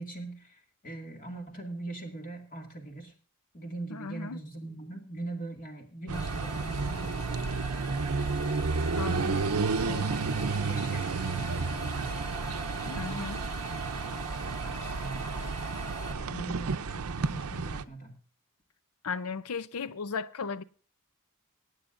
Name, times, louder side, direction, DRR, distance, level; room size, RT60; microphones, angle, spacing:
voice 1, 0.0-3.2 3.5-7.9 8.2-9.0 10.6-12.4 12.7-13.4 14.0-15.5 16.1-18.2, right 2 dB, 40° left, 2.2 m, -42 dB
voice 2, 3.9-4.4 8.9-10.1 12.9-13.4 19.0-20.6, left 5 dB, 75° left, 0.6 m, -36 dB
sound 1, 6.1-16.1, equal, 20° left, 2.7 m, -42 dB
sound 2, 6.1-17.8, right 4 dB, 70° right, 0.6 m, -31 dB
23.5 x 9.3 x 2.6 m
head